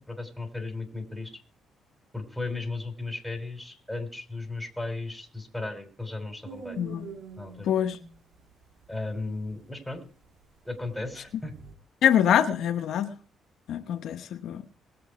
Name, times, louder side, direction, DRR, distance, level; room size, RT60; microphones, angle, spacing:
voice 1, 0.0-1.3 2.1-6.8 7.4-7.7 8.9-10.0 10.6-11.5, left 2 dB, 5° left, 3.2 m, -35 dB
sound 1, 6.4-11.7, right 5 dB, 75° right, 2.5 m, -46 dB
voice 2, 6.8-7.1 7.7-8.0 12.0-13.2 13.7-14.6, left 9 dB, 75° left, 0.9 m, -24 dB
20.0 x 7.9 x 4.7 m
cardioid pair, 90°, 0 cm